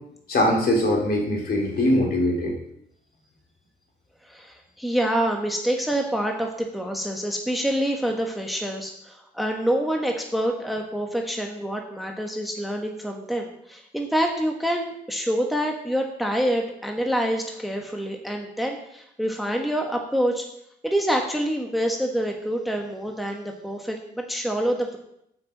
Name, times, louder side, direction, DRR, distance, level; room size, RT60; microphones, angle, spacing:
voice 1, 0.3-2.5, left 1 dB, 50° left, -1 dB, 3.4 m, -22 dB
voice 2, 4.2-20.5 20.8-25.0, equal, ahead, 2 dB, 1.3 m, -26 dB
7.9 x 6.0 x 7.7 m, 0.77 s
cardioid pair, 90°, 20 cm